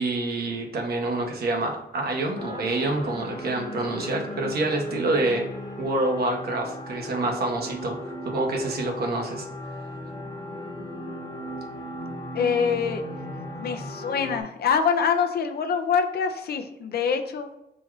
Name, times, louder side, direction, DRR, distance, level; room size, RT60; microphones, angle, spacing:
voice 1, 0.0-5.5 5.8-8.0 8.2-9.5, right 2 dB, 75° right, 2 dB, 1.0 m, -27 dB
sound 1, 2.4-14.4, left 1 dB, 25° left, 1.0 m, -37 dB
voice 2, 12.3-13.0 13.6-17.5, left 6 dB, 75° left, 6 dB, 0.5 m, -25 dB
4.2 x 2.3 x 4.6 m, 0.91 s
cardioid pair, 75°, 16 cm